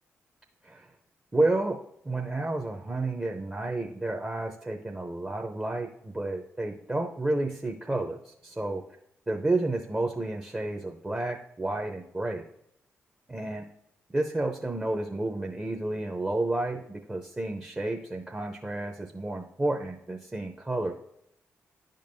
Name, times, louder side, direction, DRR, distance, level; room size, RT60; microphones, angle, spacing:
voice 1, 1.3-1.8 2.0-8.8 9.3-12.4 13.3-13.7 14.1-20.9, right 2 dB, 20° right, 2 dB, 0.7 m, -31 dB
10.0 x 5.2 x 2.7 m, 0.76 s
hypercardioid pair, 40°, 6 cm